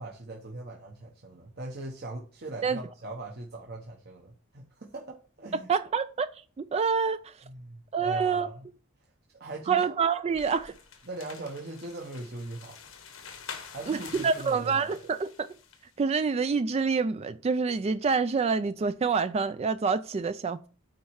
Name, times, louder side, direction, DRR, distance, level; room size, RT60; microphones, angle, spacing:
voice 1, 0.0-5.7 7.4-8.7 9.3-9.8 11.1-12.8 13.7-14.9, right 2 dB, 55° right, 1.1 m, -40 dB
voice 2, 5.7-6.3 6.6-7.3 7.9-8.5 9.7-10.7 13.9-14.0 14.2-15.5 16.0-20.7, right 5 dB, 30° right, 0.3 m, -27 dB
sound 1, 10.3-15.9, left 6 dB, 90° left, 1.3 m, -47 dB
9.0 x 4.3 x 4.8 m
head